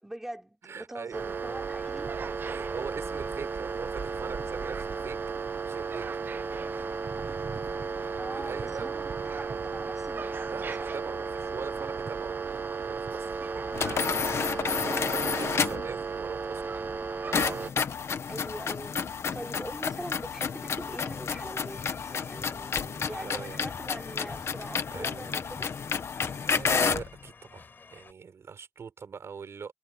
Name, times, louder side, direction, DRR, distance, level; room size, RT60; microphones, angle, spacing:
voice 1, 0.0-2.1 8.2-10.9 14.9-15.4 18.3-19.0 19.3-22.7 23.1-25.7, right 1 dB, 10° right, 5.9 m, -42 dB
voice 2, 0.6-1.5 2.4-5.2 5.6-6.2 8.2-8.9 10.5-13.4 14.8-16.6 22.8-23.6 24.9-25.5 26.2-29.7, right 6 dB, 70° right, 6.2 m, -42 dB
sound 1, 1.1-17.7, right 5 dB, 45° right, 0.9 m, -34 dB
sound 2, 13.7-15.9 17.3-27.1, left 6 dB, 70° left, 1.1 m, -30 dB
sound 3, 20.8-28.1, left 4 dB, 45° left, 7.0 m, -48 dB
wide cardioid pair, 175°, 5 cm